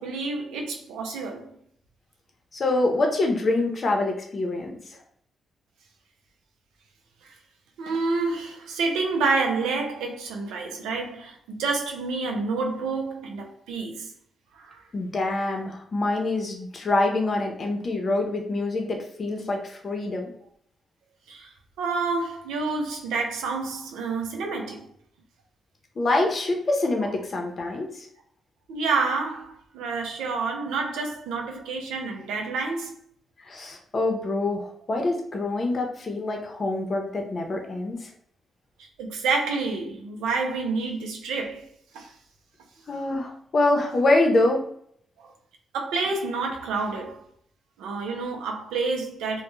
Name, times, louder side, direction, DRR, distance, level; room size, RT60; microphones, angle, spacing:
voice 1, 0.0-1.6 7.8-14.1 14.5-14.8 21.3-21.5 21.8-24.9 28.7-32.9 38.8-41.7 41.9-42.1 45.2-45.3 45.7-47.2 47.8-49.4, right 4 dB, 85° right, 0.4 m, -28 dB
voice 2, 2.5-4.8 14.9-20.3 26.0-28.1 33.4-38.1 42.9-44.7, left 2 dB, 50° left, 0.6 m, -25 dB
2.1 x 2.1 x 3.0 m
supercardioid pair, 50°, 0 cm